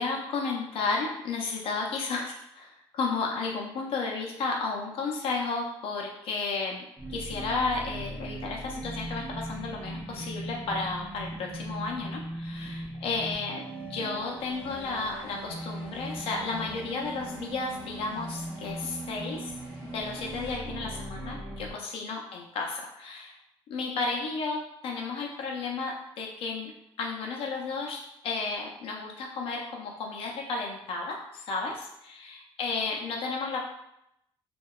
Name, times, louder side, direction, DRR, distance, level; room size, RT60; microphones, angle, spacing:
voice 1, 0.0-19.5 19.8-23.3 23.7-26.7 27.0-33.6, left 4 dB, 60° left, 0 dB, 0.4 m, -33 dB
sound 1, 7.0-21.7, right 1 dB, 10° right, 0.6 m, -39 dB
sound 2, 14.4-20.6, right 2 dB, 40° right, 0.8 m, -51 dB
2.7 x 2.1 x 2.3 m, 0.79 s
cardioid pair, 170°, 11 cm